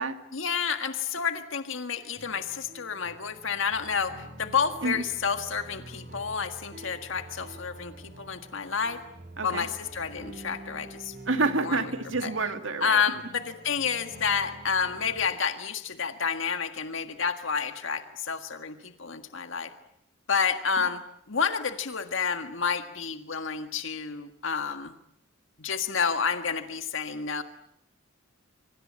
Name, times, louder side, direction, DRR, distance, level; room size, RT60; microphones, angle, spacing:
voice 1, 0.3-9.0 9.4-11.1 11.6-11.9 12.2-12.3 12.8-19.7 20.3-21.0 21.3-24.9 25.6-27.4, left 6 dB, 70° left, 7 dB, 1.7 m, -30 dB
sound 1, 2.2-15.3, right 1 dB, 45° right, 7.0 m, -47 dB
voice 2, 11.3-13.0, right 3 dB, 75° right, 8 dB, 2.4 m, -28 dB
27.0 x 25.0 x 8.8 m, 0.73 s
head